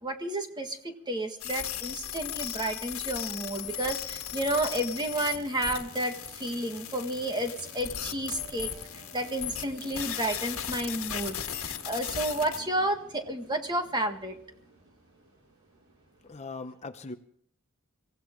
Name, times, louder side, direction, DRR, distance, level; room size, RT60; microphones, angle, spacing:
voice 1, 0.0-8.7 9.1-14.4, right 1 dB, 20° right, 5 dB, 1.6 m, -31 dB
sound 1, 1.4-12.6, left 11 dB, 75° left, 1.6 m, -37 dB
sound 2, 3.5-16.4, right 2 dB, 75° right, 3.7 m, -52 dB
voice 2, 16.2-17.2, left 3 dB, 30° left, 8 dB, 0.8 m, -40 dB
24.0 x 16.0 x 3.7 m, 0.64 s
head